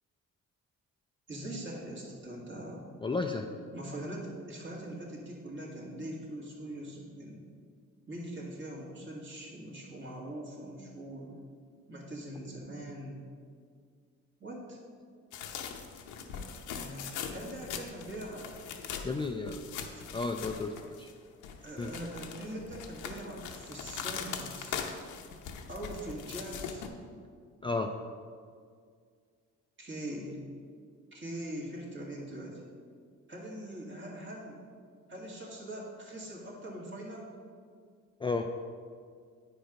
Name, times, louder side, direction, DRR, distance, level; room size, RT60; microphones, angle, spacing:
voice 1, 1.3-2.9 3.7-7.4 8.1-11.4 11.9-13.2 14.4-14.8 16.7-17.1 17.3-18.5 19.9-20.0 21.6-24.8 25.7-26.9 29.8-30.4 31.1-32.6 33.3-34.6 35.1-37.3, right 1 dB, 40° right, -3 dB, 2.4 m, -42 dB
voice 2, 3.0-3.5 19.0-19.6 20.1-21.1 21.8-21.9 27.6-27.9 38.2-38.5, left 3 dB, 15° left, 4 dB, 0.4 m, -32 dB
sound 1, 15.3-21.1 21.4-26.9, left 7 dB, 85° left, 0.8 m, -41 dB
9.0 x 5.1 x 5.2 m, 2.1 s
cardioid pair, 90°, 30 cm